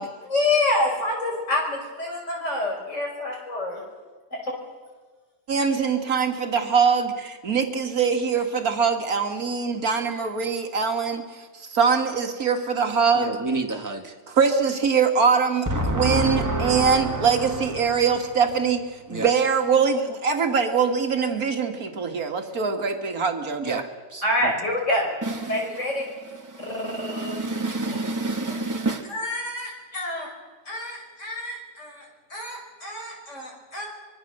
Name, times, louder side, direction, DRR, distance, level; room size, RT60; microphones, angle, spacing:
voice 1, 0.2-3.8 4.3-4.5 24.2-25.1 25.5-26.1 26.6-27.4 27.9-28.0 29.1-30.3 30.7-33.9, left 1 dB, 45° left, 0 dB, 6.0 m, -27 dB
voice 2, 5.5-13.4 14.3-15.7 15.9-18.8 19.1-23.8, right 5 dB, 60° right, 5 dB, 2.3 m, -23 dB
voice 3, 13.1-14.1 15.7-18.0 19.1-19.3 23.6-23.8 24.1-24.5 25.2-25.6 26.5-29.1, right 2 dB, 10° right, 3 dB, 1.7 m, -28 dB
24.5 x 22.0 x 6.8 m, 1.4 s
omnidirectional pair, 1.8 m